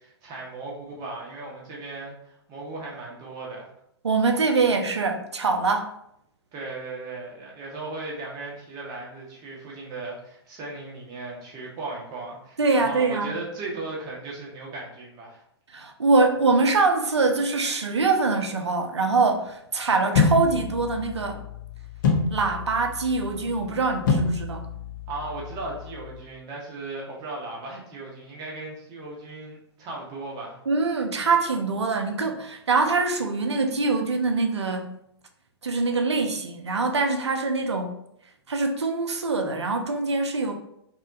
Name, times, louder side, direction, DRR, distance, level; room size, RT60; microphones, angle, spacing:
voice 1, 0.0-3.7 6.5-15.4 25.1-30.6, right 3 dB, 25° right, -2 dB, 0.7 m, -37 dB
voice 2, 4.0-5.9 12.6-13.3 15.7-21.4 22.3-24.6 30.7-35.0 35.6-37.9 38.5-40.5, right 3 dB, 80° right, 4 dB, 0.4 m, -24 dB
sound 1, 20.1-26.2, left 4 dB, 50° left, 0.4 m, -27 dB
2.8 x 2.0 x 2.5 m, 0.76 s
figure-of-eight pair, 110°, 14 cm